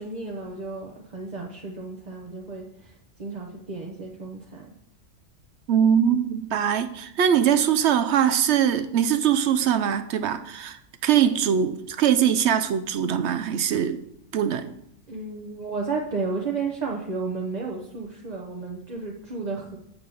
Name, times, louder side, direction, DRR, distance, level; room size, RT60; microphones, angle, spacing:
voice 1, 0.0-4.7 15.1-19.8, right 4 dB, 35° right, 0 dB, 0.8 m, -33 dB
voice 2, 5.7-14.0 14.3-14.7, right 8 dB, 65° right, 10 dB, 0.8 m, -22 dB
7.7 x 4.8 x 6.5 m, 0.74 s
omnidirectional pair, 1.4 m